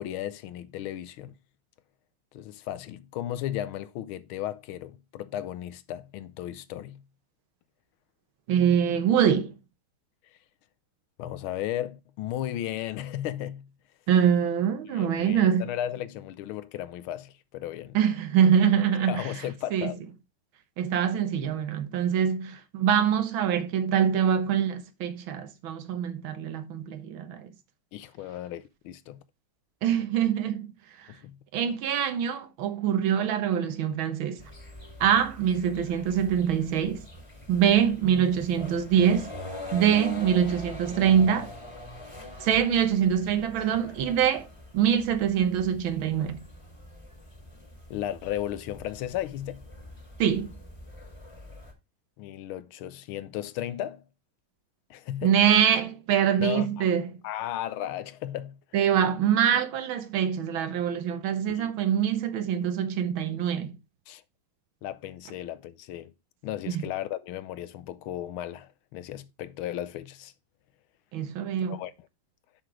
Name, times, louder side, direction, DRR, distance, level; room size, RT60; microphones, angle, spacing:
voice 1, 0.0-1.3 2.3-7.0 11.2-13.7 14.9-18.0 19.0-20.0 27.9-29.2 31.1-31.4 47.9-49.7 52.2-54.0 54.9-55.3 56.4-56.9 57.2-58.6 61.5-61.7 64.1-64.2 64.8-66.1 66.4-70.3 71.7-71.9, left 12 dB, 85° left, 1.5 m, -35 dB
voice 2, 8.5-9.5 14.1-15.7 17.9-19.3 19.7-19.9 20.8-27.5 29.8-30.7 31.5-34.4 35.0-37.0 37.5-39.3 39.7-41.5 42.4-44.5 44.7-46.4 50.2-50.5 55.2-57.2 58.7-63.7 66.7-66.8 71.1-71.8, right 8 dB, 75° right, 1.7 m, -24 dB
sound 1, 34.4-51.7, left 1 dB, 15° left, 1.7 m, -44 dB
6.3 x 5.9 x 4.8 m
omnidirectional pair, 2.3 m